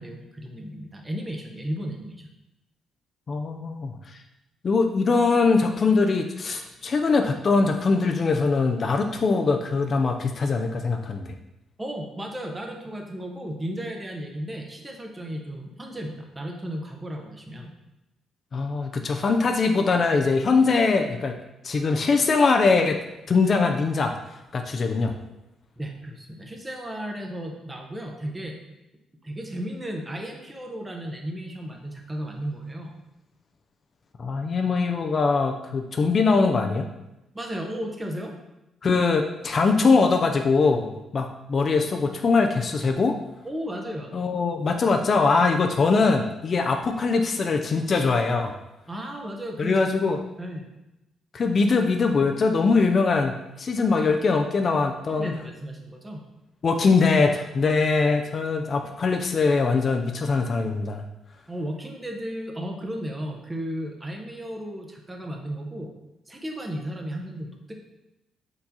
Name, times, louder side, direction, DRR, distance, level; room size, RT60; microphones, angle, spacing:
voice 1, 0.0-2.2 11.8-17.7 25.8-28.6 29.2-33.0 37.3-38.3 43.4-44.2 48.9-49.8 50.4-50.7 55.1-56.2 61.5-65.9 66.3-67.8, equal, 20° right, 2 dB, 0.8 m, -34 dB
voice 2, 3.3-3.9 4.6-11.3 18.5-21.3 21.6-23.0 23.3-25.1 34.2-36.9 38.8-43.2 44.1-48.5 49.6-50.2 51.3-53.3 53.6-55.3 56.6-61.0, left 4 dB, 45° left, 5 dB, 0.4 m, -22 dB
4.5 x 3.8 x 2.8 m, 0.93 s
cardioid pair, 90°, 0 cm